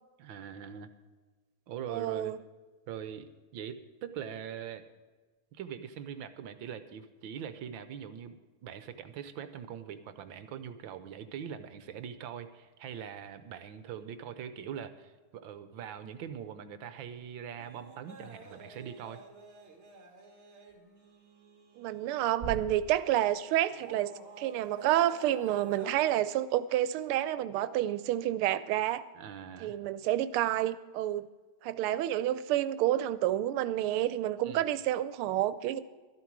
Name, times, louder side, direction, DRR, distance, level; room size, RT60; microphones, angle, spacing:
voice 1, 0.2-0.9 1.7-2.4 2.9-4.9 5.5-19.2 29.1-29.8 34.4-34.6, right 8 dB, 70° right, 11 dB, 1.5 m, -42 dB
voice 2, 1.9-2.4 21.8-24.1 24.4-29.0 29.6-31.3 31.6-35.8, right 13 dB, 90° right, 15 dB, 1.5 m, -29 dB
sound 1, 17.6-22.8 23.2-26.0, right 4 dB, 35° right, 1.7 m, -47 dB
12.5 x 12.5 x 4.7 m, 1.4 s
omnidirectional pair, 2.3 m